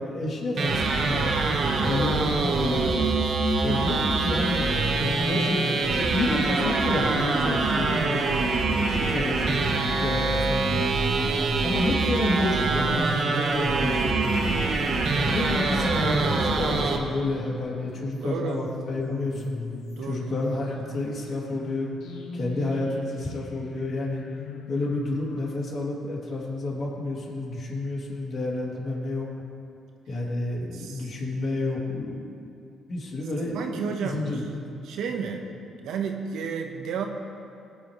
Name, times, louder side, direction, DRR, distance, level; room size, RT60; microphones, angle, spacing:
voice 1, 0.0-1.3 1.8-3.0 3.6-8.3 8.7-10.9 11.6-14.6 15.1-19.6 20.0-21.9 22.3-24.2 24.7-29.3 30.1-32.3 32.9-34.6, left 2 dB, 55° left, -3 dB, 3.0 m, -30 dB
sound 1, 0.6-17.0, right 3 dB, 60° right, 1.4 m, -24 dB
voice 2, 1.0-1.5 8.1-8.5 18.2-18.7 20.0-20.4 30.7-31.1 33.5-34.4 34.8-35.4 35.8-37.1, right 6 dB, 85° right, 3 dB, 1.2 m, -33 dB
sound 2, 14.2-25.5, left 3 dB, 85° left, 1.3 m, -42 dB
19.0 x 9.8 x 3.3 m, 2.5 s
cardioid pair, 90°, 0 cm